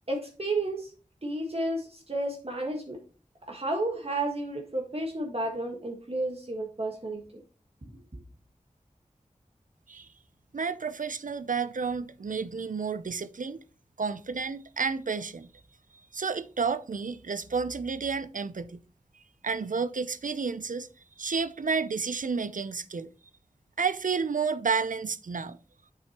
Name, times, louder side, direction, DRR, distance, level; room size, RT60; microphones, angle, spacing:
voice 1, 0.1-0.9 1.2-3.0 3.4-7.4 8.1-8.2, right 2 dB, 45° right, 1.6 m, -32 dB
voice 2, 10.5-13.6 14.0-15.5 16.1-18.8 19.4-20.9 21.2-23.1 23.8-25.6, right 5 dB, 70° right, 0.5 m, -31 dB
7.8 x 6.7 x 2.9 m
wide cardioid pair, 45°, 14 cm